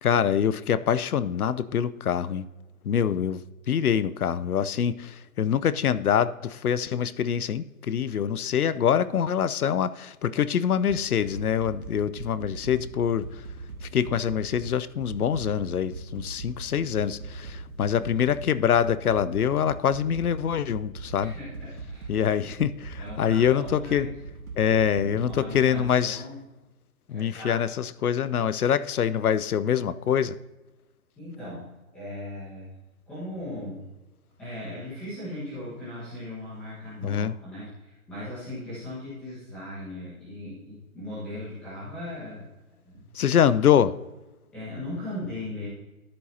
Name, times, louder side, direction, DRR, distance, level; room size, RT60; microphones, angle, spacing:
voice 1, 0.0-2.5 2.8-13.4 13.8-21.4 22.1-24.1 24.6-26.2 27.1-30.4 37.0-37.4 43.1-44.0, left 8 dB, 85° left, 16 dB, 0.7 m, -25 dB
sound 1, 10.9-25.8, right 3 dB, 75° right, 1.6 m, -40 dB
voice 2, 21.2-22.3 23.0-24.1 24.6-26.4 27.1-27.6 31.2-32.7 33.1-33.8 34.4-42.4 42.8-43.1 44.5-45.7, left 1 dB, ahead, -12 dB, 1.4 m, -38 dB
13.0 x 7.7 x 2.7 m, 1.1 s
hypercardioid pair, 180°, 43 cm